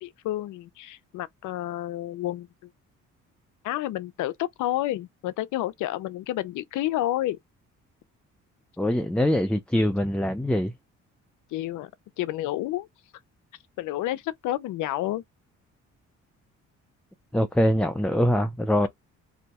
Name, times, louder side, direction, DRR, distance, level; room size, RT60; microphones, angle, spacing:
voice 1, 0.0-2.5 3.6-7.4 11.5-11.9 12.2-12.9 13.8-15.2, left 14 dB, 80° left, 0.5 m, -30 dB
voice 2, 8.8-10.7 17.3-18.9, equal, 5° left, 0.4 m, -23 dB
2.7 x 2.2 x 4.0 m
cardioid pair, 90°, 30 cm